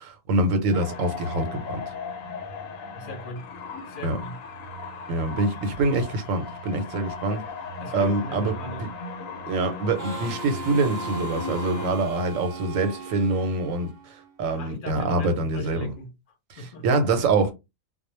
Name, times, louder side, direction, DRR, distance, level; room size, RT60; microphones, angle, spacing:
voice 1, 0.3-1.8 4.0-4.2 5.1-7.4 7.9-8.5 8.8-8.9 9.5-15.9 16.5-17.5, right 2 dB, 90° right, 1.1 m, -25 dB
sound 1, 0.7-11.9, left 3 dB, 85° left, 1.0 m, -37 dB
voice 2, 2.9-3.5 3.8-4.4 7.8-8.9 14.5-16.9, left 2 dB, 50° left, 0.7 m, -39 dB
Harmonica, 10.0-14.4, right 3 dB, 50° right, 0.6 m, -38 dB
2.3 x 2.1 x 3.0 m
omnidirectional pair, 1.3 m